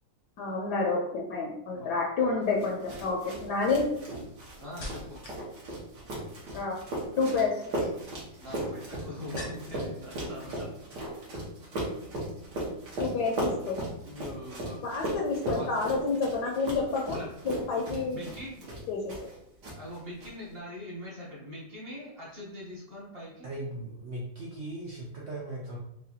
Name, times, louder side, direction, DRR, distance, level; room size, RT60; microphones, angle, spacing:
voice 1, 0.4-3.9 6.5-6.8 7.2-7.6 13.0-13.8 14.8-17.2 17.4-18.2 18.9-19.1, left 4 dB, 70° left, 0 dB, 1.1 m, -29 dB
sound 1, 2.0-2.3 3.1-5.5 5.7-6.3 7.5-9.9 10.2-10.9 11.2-11.4, left 2 dB, 45° left, 0.7 m, -47 dB
sound 2, 2.6-19.4 19.6-20.3, right 1 dB, 70° right, 1.7 m, -37 dB
voice 2, 4.6-5.2 8.4-10.7 14.0-14.8 15.5-15.7 17.1-17.3 18.1-18.6 19.7-23.5, left 1 dB, 40° right, -5 dB, 0.9 m, -42 dB
voice 3, 23.4-25.8, right 1 dB, 85° right, -4 dB, 0.5 m, -38 dB
4.8 x 2.2 x 2.7 m, 0.79 s
omnidirectional pair, 2.0 m